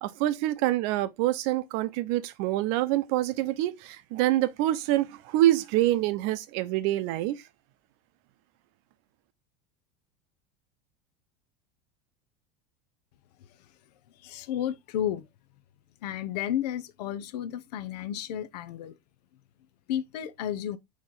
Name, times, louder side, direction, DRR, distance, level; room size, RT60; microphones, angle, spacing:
voice 1, 0.0-7.4, right 15 dB, 60° right, 0.6 m, -26 dB
voice 2, 14.2-15.3 16.0-19.0 19.9-20.8, left 10 dB, 80° left, 0.6 m, -32 dB
4.2 x 3.1 x 3.7 m
supercardioid pair, 130°, 20 cm